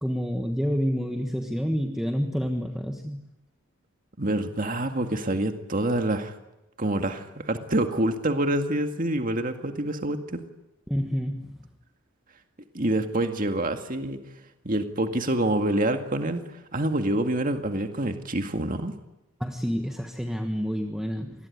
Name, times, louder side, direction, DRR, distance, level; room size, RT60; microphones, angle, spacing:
voice 1, 0.0-3.2 10.9-11.7 19.4-21.5, equal, ahead, 4 dB, 1.3 m, -28 dB
voice 2, 4.2-6.3 6.8-10.4 12.7-14.2 14.6-16.4 16.7-18.9, right 1 dB, 40° right, 6 dB, 2.1 m, -26 dB
27.0 x 21.0 x 9.6 m, 0.96 s
head